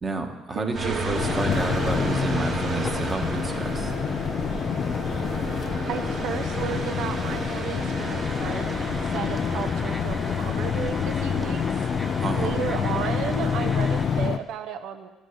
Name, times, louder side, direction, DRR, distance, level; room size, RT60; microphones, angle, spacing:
voice 1, 0.0-3.9 12.2-12.5, right 3 dB, 25° right, 4 dB, 1.4 m, -30 dB
voice 2, 0.5-1.2 5.9-11.6 12.4-15.1, right 8 dB, 70° right, 9 dB, 0.8 m, -33 dB
sound 1, 0.7-14.3, right 2 dB, 45° right, 2.1 m, -33 dB
sound 2, 1.1-14.4, left 7 dB, 50° left, 0.3 m, -27 dB
sound 3, 8.0-14.1, equal, 5° right, 0.9 m, -41 dB
10.5 x 6.3 x 8.2 m, 1.1 s
cardioid pair, 95°, 0 cm